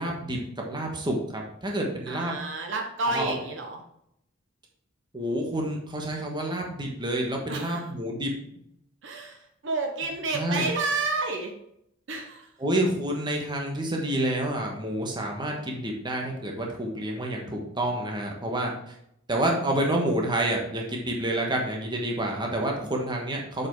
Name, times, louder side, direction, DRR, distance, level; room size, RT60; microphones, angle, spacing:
voice 1, 0.0-2.3 3.0-3.3 5.1-8.4 10.3-10.7 12.6-18.9 19.3-23.7, right 1 dB, 20° right, 0 dB, 1.3 m, -28 dB
voice 2, 2.1-3.8 7.5-7.8 9.0-11.5 12.1-12.5, right 3 dB, 60° right, 3 dB, 1.0 m, -30 dB
6.9 x 5.2 x 4.6 m, 0.75 s
head